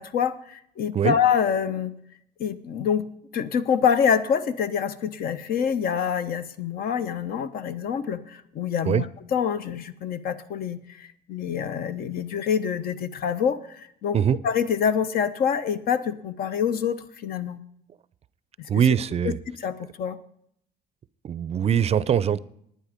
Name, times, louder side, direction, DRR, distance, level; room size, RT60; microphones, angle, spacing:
voice 1, 0.0-1.9 2.4-3.0 3.3-9.1 9.3-14.2 14.4-17.6 18.6-18.7 19.2-19.3 19.6-20.2, left 7 dB, 60° left, 12 dB, 0.8 m, -26 dB
voice 2, 18.7-19.4 21.2-22.4, right 8 dB, 40° right, 17 dB, 0.5 m, -22 dB
11.0 x 9.5 x 5.1 m, 0.70 s
cardioid pair, 110°, 17 cm